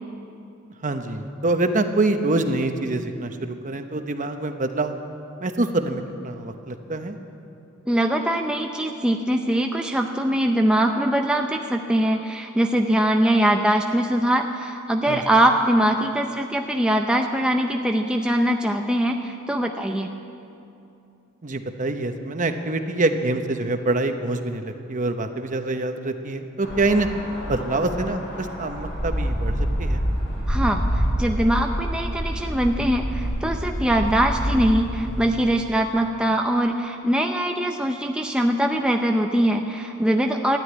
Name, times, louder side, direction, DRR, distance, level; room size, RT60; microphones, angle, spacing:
voice 1, 0.8-5.0 5.4-7.2 15.1-15.2 21.4-27.1 27.5-30.0, right 2 dB, 40° right, 7 dB, 0.9 m, -25 dB
voice 2, 7.9-20.1 30.5-40.6, right 1 dB, 5° right, 2 dB, 0.6 m, -22 dB
sound 1, 26.6-35.4, equal, 55° left, 3.2 m, -27 dB
13.0 x 11.0 x 9.4 m, 2.7 s
head